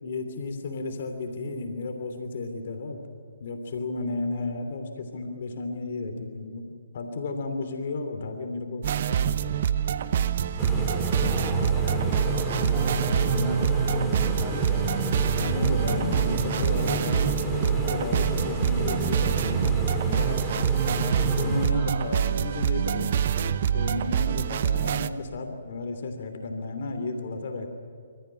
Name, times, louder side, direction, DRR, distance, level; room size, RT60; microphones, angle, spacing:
voice 1, 0.0-3.0 3.4-6.7 6.9-9.7 11.2-11.6 13.3-13.7 15.4-20.4 21.4-27.7, left 3 dB, 60° left, 5 dB, 3.1 m, -33 dB
sound 1, 8.8-25.1, right 8 dB, 55° right, 0.9 m, -25 dB
sound 2, 10.6-21.7, left 1 dB, 5° left, 2.5 m, -31 dB
voice 2, 11.2-15.0 20.9-21.2 21.7-22.1, right 1 dB, 20° right, 0 dB, 6.2 m, -39 dB
28.0 x 14.5 x 9.9 m, 2.2 s
hypercardioid pair, 140°, 0 cm